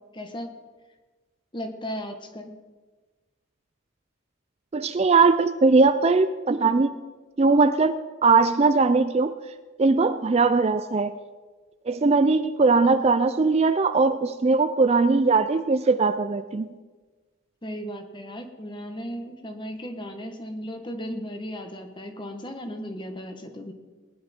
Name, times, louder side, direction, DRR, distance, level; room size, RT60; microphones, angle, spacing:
voice 1, 0.1-0.6 1.5-2.6 17.6-23.7, equal, 25° left, 6 dB, 1.2 m, -36 dB
voice 2, 4.7-6.9 7.4-8.0 8.2-9.3 9.8-11.1 11.9-16.7, right 4 dB, 30° right, 11 dB, 0.4 m, -20 dB
19.5 x 10.5 x 4.3 m, 1.3 s
head